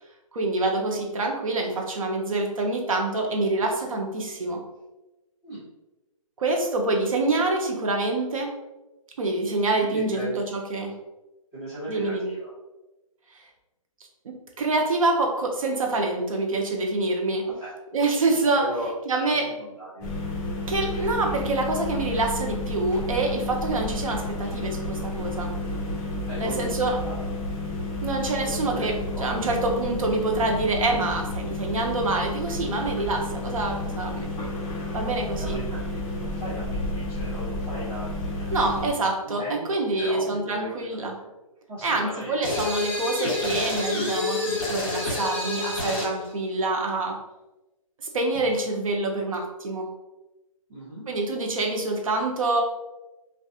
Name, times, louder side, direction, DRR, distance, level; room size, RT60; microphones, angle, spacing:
voice 1, 0.3-4.6 6.4-8.5 9.2-10.9 11.9-12.3 14.2-17.5 17.9-18.7 19.1-19.5 20.7-25.5 26.4-27.0 28.0-34.5 34.9-35.5 38.5-41.2 41.8-47.2 48.1-49.9 51.1-52.6, right 2 dB, 70° right, 2 dB, 0.7 m, -26 dB
voice 2, 9.8-10.3 11.5-12.5 17.4-17.7 18.5-18.9 19.6-20.1 26.2-27.3 28.4-29.5 35.4-38.8 39.2-39.7 40.0-41.3 41.7-42.6 50.7-51.1, right 1 dB, 15° right, -10 dB, 0.9 m, -37 dB
sound 1, 20.0-38.9, left 2 dB, 20° left, 0.5 m, -31 dB
sound 2, 42.4-46.2, left 2 dB, 40° left, 0.9 m, -28 dB
2.3 x 2.3 x 2.6 m, 1.0 s
hypercardioid pair, 150°, 18 cm